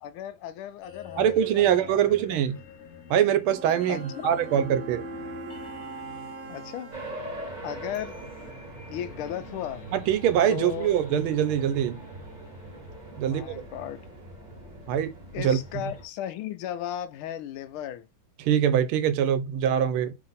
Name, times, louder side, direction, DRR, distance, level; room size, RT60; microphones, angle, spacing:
voice 1, 0.0-2.4 3.9-4.0 6.5-6.9 7.6-8.2 8.9-9.8 10.5-10.9 13.2-14.0 15.3-18.1, left 11 dB, 80° left, 1.4 m, -36 dB
sound 1, 0.8-13.8, left 2 dB, 45° left, 1.0 m, -47 dB
voice 2, 1.2-2.6 3.1-5.0 9.9-12.0 13.2-13.6 14.9-15.6 18.4-20.1, right 9 dB, 85° right, 1.5 m, -24 dB
sound 2, 3.5-8.5, right 2 dB, 60° right, 0.8 m, -41 dB
sound 3, 6.9-16.1, right 1 dB, 25° right, 1.2 m, -42 dB
3.3 x 3.1 x 3.9 m
omnidirectional pair, 2.3 m